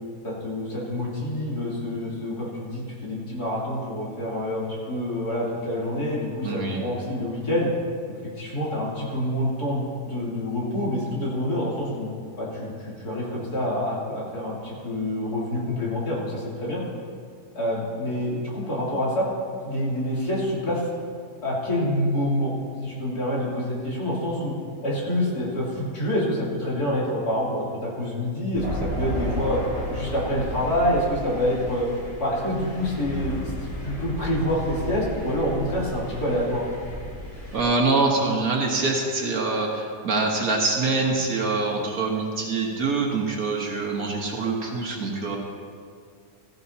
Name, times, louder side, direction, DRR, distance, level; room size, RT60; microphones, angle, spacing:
voice 1, 0.2-7.7 8.4-12.1 12.4-16.8 17.6-19.3 19.6-20.9 21.4-22.5 22.8-24.5 24.8-29.6 29.9-31.9 32.2-33.5 33.8-36.6, left 1 dB, 65° left, -7 dB, 3.7 m, -27 dB
voice 2, 6.4-6.8 37.5-45.4, right 3 dB, 60° right, 0 dB, 1.7 m, -24 dB
Thunder, 28.5-37.6, left 1 dB, 45° left, 3.1 m, -33 dB
15.0 x 14.5 x 2.9 m, 2.2 s
omnidirectional pair, 1.8 m